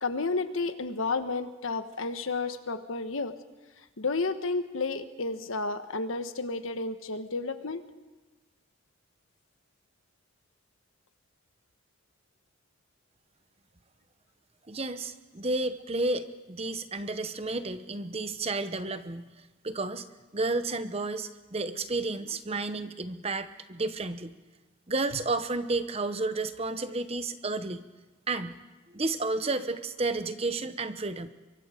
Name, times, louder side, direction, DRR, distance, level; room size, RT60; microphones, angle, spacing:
voice 1, 0.0-3.4 4.0-7.8, left 3 dB, 75° left, 9 dB, 1.3 m, -31 dB
voice 2, 14.7-19.3 19.6-20.1 20.3-24.3 24.9-27.8 28.3-28.6 28.9-31.3, right 3 dB, 30° right, 11 dB, 0.9 m, -31 dB
24.5 x 23.5 x 5.1 m, 1.2 s
head